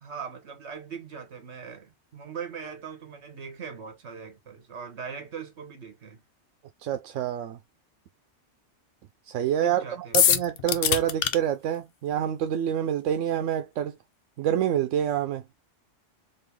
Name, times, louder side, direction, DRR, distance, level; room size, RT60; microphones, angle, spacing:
voice 1, 0.0-6.2 9.6-10.3, right 6 dB, 70° right, 1.4 m, -40 dB
voice 2, 6.8-7.6 9.3-9.8 10.1-13.9 14.4-15.4, right 10 dB, 90° right, 0.9 m, -27 dB
sound 1, 10.1-11.4, left 9 dB, 60° left, 0.7 m, -22 dB
3.9 x 2.7 x 3.3 m
omnidirectional pair, 1.2 m